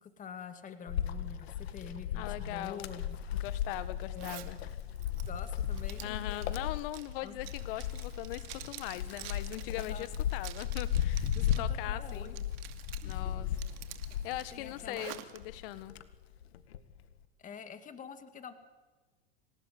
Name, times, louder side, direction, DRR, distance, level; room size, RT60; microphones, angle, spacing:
voice 1, 0.0-3.0 4.0-4.5 5.3-6.0 7.2-7.4 9.8-10.1 11.4-12.3 13.0-13.4 14.5-15.1 17.4-18.5, left 6 dB, 25° left, 9 dB, 2.2 m, -46 dB
Wind, 0.9-15.0 15.4-16.9, left 10 dB, 80° left, 2.0 m, -36 dB
voice 2, 2.1-2.8 3.3-4.6 6.0-11.3 11.6-12.4 13.0-13.5 14.2-16.0, left 15 dB, 60° left, 15 dB, 1.6 m, -40 dB
Zipper (clothing), 4.2-4.5 5.0-11.7 12.1-13.1 13.5-15.4, right 16 dB, 65° right, 2.6 m, -48 dB
27.0 x 18.0 x 9.4 m, 1.3 s
hypercardioid pair, 110°, 31 cm